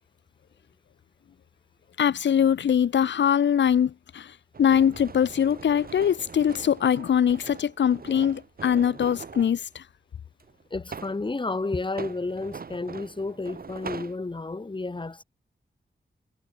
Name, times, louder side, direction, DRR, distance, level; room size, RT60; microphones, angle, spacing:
voice 1, 2.0-4.3 4.6-9.8, left 8 dB, 90° left, 0.8 m, -22 dB
sound 1, 4.5-9.6 10.4-11.2 11.8-14.2, right 5 dB, 55° right, 1.7 m, -42 dB
voice 2, 10.7-15.2, left 3 dB, 25° left, 1.6 m, -31 dB
wide cardioid pair, 85°, 18 cm